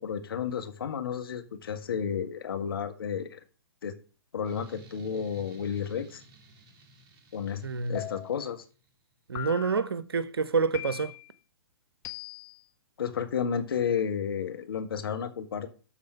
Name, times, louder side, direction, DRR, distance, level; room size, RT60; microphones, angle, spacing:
voice 1, 0.0-3.4 3.8-3.9 4.3-6.2 7.3-7.6 7.9-8.6 13.0-15.7, left 7 dB, 65° left, 1.6 m, -32 dB
sound 1, 4.4-8.9, right 1 dB, 35° right, 1.9 m, -55 dB
voice 2, 7.6-8.0 9.3-11.1, right 4 dB, 75° right, 0.9 m, -28 dB
sound 2, 8.0-8.5 9.4-9.9 10.7-11.3 12.0-12.6, left 13 dB, 25° left, 1.1 m, -40 dB
12.5 x 4.2 x 5.7 m
figure-of-eight pair, 120°, 13 cm